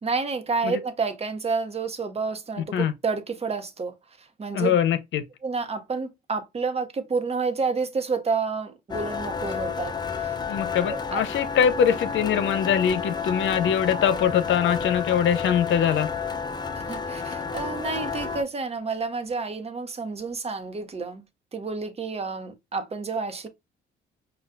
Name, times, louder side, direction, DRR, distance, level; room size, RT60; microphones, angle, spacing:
voice 1, 0.0-4.8 5.4-10.4 10.8-11.2 16.9-21.2 21.5-23.5, right 4 dB, 30° right, 0.9 m, -29 dB
voice 2, 4.5-5.2 10.5-16.1, left 8 dB, 75° left, 0.7 m, -23 dB
sound 1, 8.9-18.4, left 5 dB, 20° left, 0.5 m, -31 dB
5.3 x 2.4 x 2.2 m
cardioid pair, 90°, 20 cm